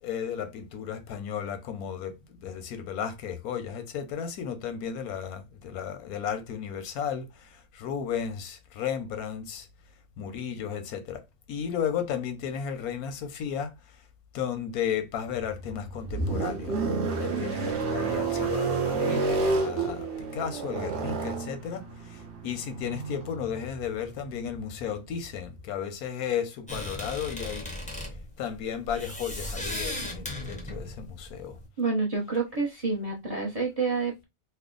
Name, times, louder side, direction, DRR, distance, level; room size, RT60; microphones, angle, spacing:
voice 1, 0.0-9.7 10.2-11.2 11.5-14.0 14.3-16.8 17.1-28.0 28.4-31.6, left 8 dB, 90° left, 1.2 m, -34 dB
sound 1, 15.3-25.6, right 4 dB, 55° right, 1.0 m, -30 dB
sound 2, 26.7-31.7, left 1 dB, 10° left, 0.4 m, -36 dB
voice 2, 31.8-34.2, right 4 dB, 30° right, 0.8 m, -28 dB
3.3 x 2.1 x 3.7 m
omnidirectional pair, 1.5 m